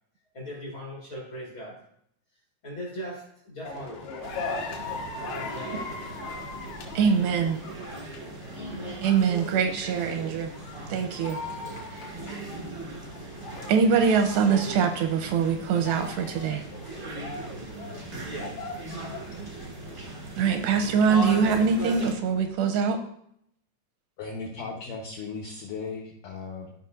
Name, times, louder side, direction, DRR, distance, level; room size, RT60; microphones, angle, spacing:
voice 1, 0.3-1.8 2.6-4.2 5.2-5.9 8.5-9.0, equal, 50° left, -4 dB, 1.6 m, -39 dB
sound 1, 3.6-22.5, left 3 dB, 65° left, 3.0 m, -41 dB
sound 2, 4.2-22.1, right 2 dB, 45° right, 0.9 m, -39 dB
voice 2, 7.0-7.6 9.0-10.5 10.9-11.4 11.9-12.0 13.7-16.6 20.4-23.0, right 6 dB, 85° right, 6 dB, 2.6 m, -23 dB
voice 3, 24.2-26.7, left 4 dB, 85° left, -1 dB, 1.8 m, -37 dB
15.0 x 5.6 x 2.5 m, 0.71 s
omnidirectional pair, 5.2 m